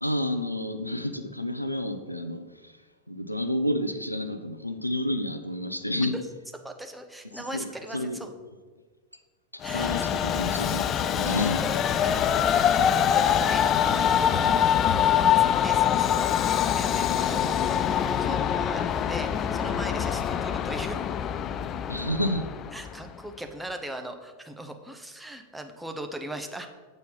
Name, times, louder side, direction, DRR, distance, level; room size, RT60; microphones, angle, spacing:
voice 1, 0.0-2.8 3.1-6.1 7.3-8.3 9.7-11.6 21.9-22.5, left 1 dB, 90° left, 9 dB, 0.5 m, -30 dB
voice 2, 6.6-8.3 9.6-9.9 11.6-21.0 22.7-26.7, right 1 dB, 5° right, 4 dB, 0.7 m, -39 dB
Train, 9.6-23.1, left 9 dB, 30° left, 0.3 m, -24 dB
8.1 x 4.2 x 5.6 m, 1.4 s
figure-of-eight pair, 90°, 0 cm